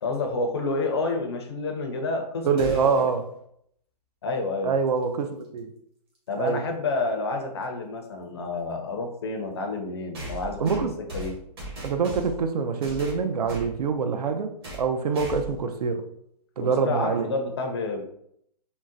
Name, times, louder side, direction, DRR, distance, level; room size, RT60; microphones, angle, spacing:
voice 1, 0.0-3.1 4.2-4.7 6.3-10.7 11.1-11.3 16.6-18.0, left 3 dB, 40° left, 0.4 m, -29 dB
voice 2, 2.4-3.2 4.6-5.7 6.4-6.6 10.6-10.9 11.8-16.0 16.6-17.2, right 5 dB, 65° right, 0.4 m, -25 dB
sound 1, 2.6-3.1 5.3-5.4 6.5-6.6 10.1-12.5 12.8-13.7 14.6-14.9 15.1-15.6, right 1 dB, 35° right, 0.9 m, -37 dB
3.7 x 2.0 x 2.5 m
hypercardioid pair, 160°, 21 cm